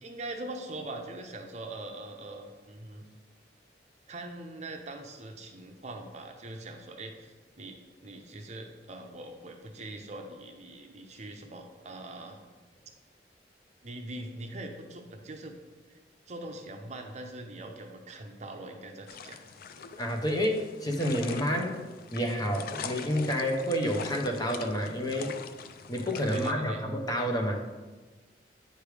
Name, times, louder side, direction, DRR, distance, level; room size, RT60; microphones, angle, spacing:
voice 1, 0.0-3.0 4.1-12.4 13.8-15.6 15.9-16.0 16.3-19.4 26.3-26.8, right 2 dB, 40° right, 4 dB, 0.7 m, -42 dB
sound 1, 19.1-26.5, left 6 dB, 55° left, 0.4 m, -43 dB
voice 2, 20.0-21.8 22.1-25.3 25.9-27.6, equal, 20° left, 2 dB, 0.8 m, -29 dB
9.3 x 3.3 x 4.9 m, 1.3 s
head